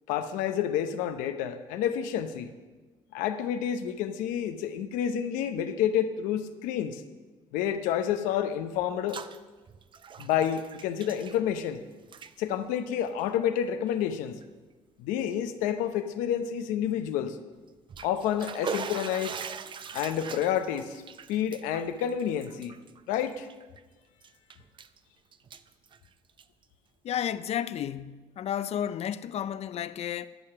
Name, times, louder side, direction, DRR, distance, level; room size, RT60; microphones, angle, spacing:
voice 1, 0.1-2.5 3.1-7.0 7.5-9.2 10.2-11.8 12.4-14.4 15.0-17.4 18.0-19.4 19.9-21.0 21.3-22.8 23.1-23.5, left 9 dB, 90° left, 0.8 m, -29 dB
Bathtub (filling or washing), 8.8-9.4 9.7-11.8 12.0-12.3 13.1-13.2 13.9-14.0 14.4-14.5 17.7-23.8 24.2-25.0 25.3-26.6, right 6 dB, 40° right, 0.5 m, -41 dB
voice 2, 27.0-30.3, left 10 dB, 55° left, 0.5 m, -32 dB
12.0 x 6.6 x 5.8 m
supercardioid pair, 85°, 13 cm